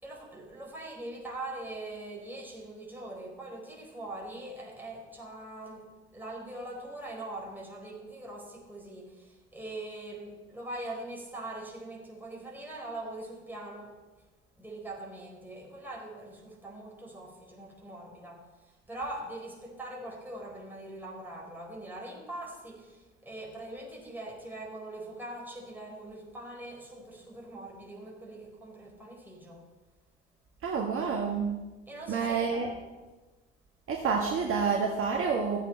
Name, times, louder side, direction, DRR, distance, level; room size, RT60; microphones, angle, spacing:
voice 1, 0.0-14.0 14.6-29.6 31.9-32.8, right 1 dB, 5° right, -2 dB, 4.3 m, -42 dB
voice 2, 30.6-31.5 32.1-32.7 33.9-35.6, right 5 dB, 40° right, 0 dB, 1.6 m, -28 dB
16.0 x 8.0 x 4.4 m, 1.2 s
figure-of-eight pair, 60°, 35 cm